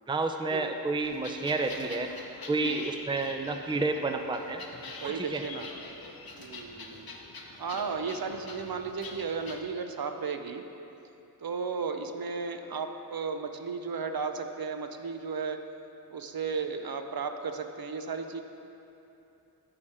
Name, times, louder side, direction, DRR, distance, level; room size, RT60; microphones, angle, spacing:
voice 1, 0.1-2.1 2.5-4.6 5.0-5.4, right 3 dB, 15° right, 6 dB, 0.4 m, -30 dB
sound 1, 1.0-9.6, left 3 dB, 70° left, 0.9 m, -45 dB
voice 2, 2.6-2.9 5.0-5.7 6.4-7.1 7.6-10.6 11.4-15.6 16.1-18.4, right 5 dB, 70° right, 6 dB, 0.6 m, -34 dB
13.5 x 4.9 x 4.3 m, 3.0 s
wide cardioid pair, 70°, 38 cm